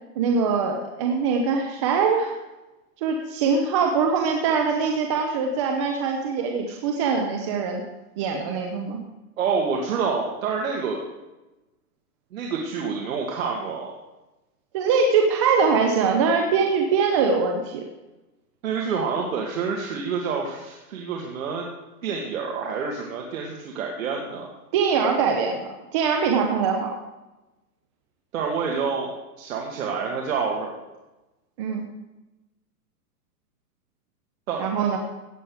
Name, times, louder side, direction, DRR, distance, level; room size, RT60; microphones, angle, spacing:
voice 1, 0.2-2.3 3.0-7.8 8.2-9.0 14.7-17.8 24.7-26.9 31.6-31.8 34.6-35.0, right 5 dB, 20° right, 2 dB, 0.7 m, -22 dB
voice 2, 9.4-11.0 12.3-13.9 18.6-21.7 22.0-24.5 28.3-30.7 34.5-34.6, right 5 dB, 60° right, -1 dB, 2.1 m, -28 dB
16.0 x 9.0 x 4.9 m, 1.0 s
hypercardioid pair, 165°, 47 cm